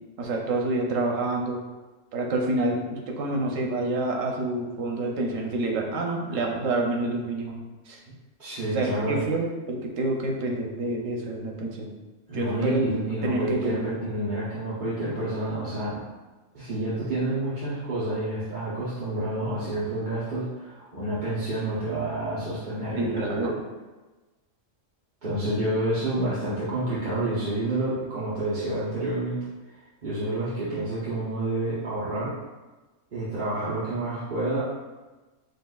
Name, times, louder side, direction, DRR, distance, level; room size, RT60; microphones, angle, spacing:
voice 1, 0.2-1.6 2.1-7.5 7.9-8.0 8.7-11.9 12.3-12.8 13.2-14.0 23.0-23.5, right 2 dB, 90° right, 0 dB, 1.1 m, -27 dB
voice 2, 8.4-9.3 12.3-16.0 16.5-23.5 25.2-29.4 29.7-32.3 33.1-34.6, right 1 dB, 40° right, -11 dB, 0.9 m, -29 dB
6.4 x 2.5 x 2.3 m, 1.2 s
omnidirectional pair, 1.3 m